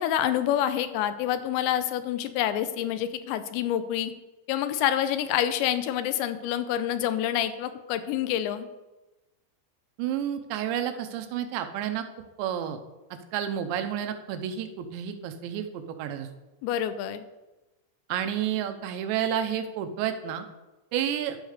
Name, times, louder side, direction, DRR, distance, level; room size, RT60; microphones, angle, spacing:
voice 1, 0.0-4.1 4.5-8.7 16.6-17.3, left 11 dB, 85° left, 11 dB, 2.9 m, -27 dB
voice 2, 10.0-12.0 12.4-12.8 13.3-16.3 18.1-20.4 20.9-21.4, right 9 dB, 85° right, 7 dB, 3.1 m, -30 dB
11.5 x 5.0 x 6.4 m, 1.1 s
omnidirectional pair, 5.1 m